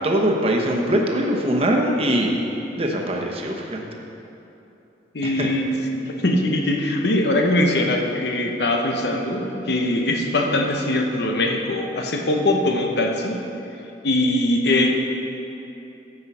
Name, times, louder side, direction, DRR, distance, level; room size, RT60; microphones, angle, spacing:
voice 1, 0.0-2.3 2.8-3.8 5.2-5.5, right 1 dB, 35° right, 0 dB, 1.1 m, -22 dB
voice 2, 5.1-5.7 5.9-13.4 14.0-14.9, left 1 dB, 65° left, 2 dB, 1.0 m, -21 dB
14.5 x 5.6 x 5.6 m, 2.9 s
head